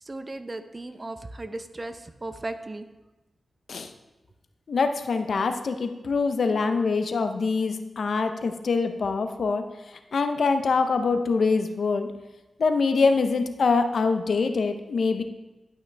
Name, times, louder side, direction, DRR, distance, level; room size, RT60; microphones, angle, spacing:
voice 1, 0.0-2.9, right 2 dB, 30° right, 9 dB, 0.6 m, -36 dB
voice 2, 4.7-9.6 10.1-12.1 12.6-15.2, left 4 dB, 70° left, 8 dB, 0.6 m, -24 dB
11.5 x 5.8 x 3.4 m, 1.1 s
cardioid pair, 65°, 0 cm